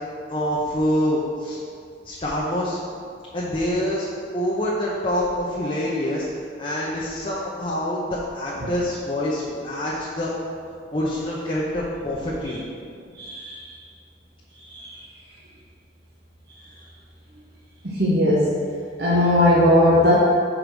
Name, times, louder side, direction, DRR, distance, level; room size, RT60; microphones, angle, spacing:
voice 1, 0.3-1.6 2.0-2.8 3.3-4.1 4.3-6.3 6.6-10.4 10.9-12.6, left 1 dB, 30° left, -6 dB, 0.8 m, -26 dB
voice 2, 13.2-13.7 14.7-15.0 17.8-18.5 19.0-20.1, left 1 dB, 65° right, -7 dB, 1.0 m, -18 dB
5.2 x 4.7 x 6.3 m, 2.2 s
head